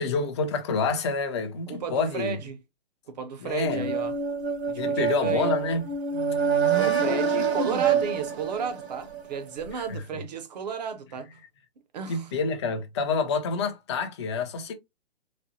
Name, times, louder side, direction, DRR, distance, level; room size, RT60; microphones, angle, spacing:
voice 1, 0.0-2.4 3.4-3.9 4.7-5.8 9.8-10.0 12.1-14.7, left 4 dB, 25° left, 0.5 m, -28 dB
voice 2, 1.7-2.6 3.1-4.1 4.7-5.5 6.7-11.3 11.9-12.3, right 7 dB, 40° right, 0.6 m, -33 dB
sound 1, 3.6-9.4, right 6 dB, 75° right, 1.4 m, -26 dB
4.0 x 2.0 x 2.7 m
hypercardioid pair, 155°, 32 cm